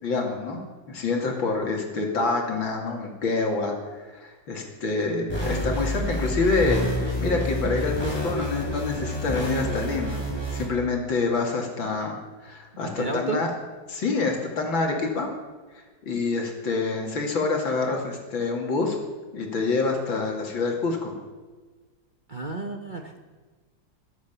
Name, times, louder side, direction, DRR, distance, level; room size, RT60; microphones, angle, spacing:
voice 1, 0.0-10.2 10.5-13.5 13.9-15.3 16.0-19.0 19.3-21.2 22.6-22.7, left 3 dB, 90° left, 1 dB, 3.3 m, -27 dB
sound 1, 5.3-10.6, equal, 10° left, 4.7 m, -28 dB
voice 2, 13.0-13.4 22.3-23.2, right 3 dB, 35° right, 3 dB, 0.9 m, -31 dB
22.5 x 8.3 x 7.0 m, 1.4 s
omnidirectional pair, 2.1 m